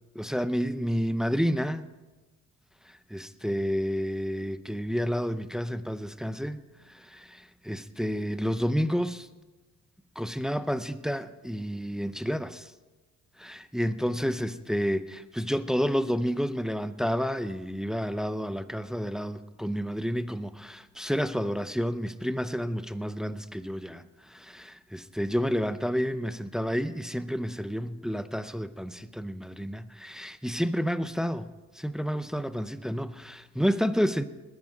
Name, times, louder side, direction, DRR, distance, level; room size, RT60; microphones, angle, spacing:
voice 1, 0.1-1.9 2.9-9.3 10.2-12.7 13.4-34.2, equal, ahead, 0.6 m, -30 dB
20.5 x 9.7 x 4.9 m
cardioid pair, 90°, 30 cm